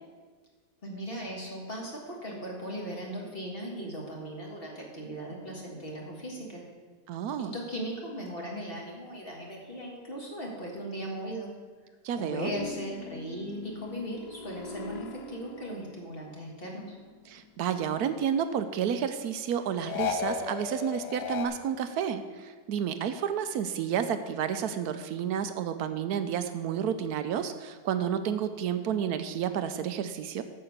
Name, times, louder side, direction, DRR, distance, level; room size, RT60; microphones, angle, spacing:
voice 1, 0.8-6.6 7.4-11.5 12.1-17.0, equal, 35° left, -1 dB, 1.9 m, -38 dB
voice 2, 7.1-7.6 12.0-12.5 17.3-30.4, right 8 dB, 70° right, 10 dB, 1.0 m, -31 dB
sound 1, 12.5-16.4 16.7-18.3 19.8-21.5, left 6 dB, 70° left, 1.3 m, -38 dB
8.5 x 6.8 x 6.5 m, 1.5 s
omnidirectional pair, 1.8 m